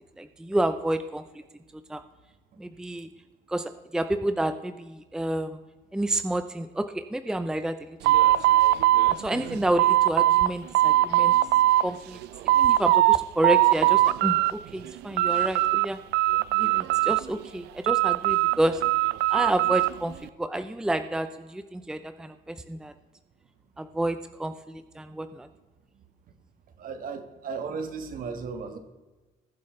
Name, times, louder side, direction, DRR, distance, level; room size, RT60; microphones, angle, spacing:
voice 1, 0.2-1.2 1.9-2.0 2.6-3.1 3.5-5.6 5.9-8.0 9.1-11.3 11.8-12.2 12.5-16.0 16.6-18.8 19.3-20.1 20.4-22.9 23.8-25.5, right 1 dB, 5° right, 9 dB, 0.6 m, -29 dB
sound 1, 8.0-10.5 10.7-11.8 12.2-13.2 13.4-14.5 14.9-15.9 16.1-17.4 17.9-19.9, right 15 dB, 80° right, 0.4 m, -21 dB
voice 2, 26.8-28.8, right 5 dB, 55° right, 7 dB, 1.6 m, -35 dB
20.5 x 7.7 x 3.3 m, 1.2 s
cardioid pair, 110°, 17 cm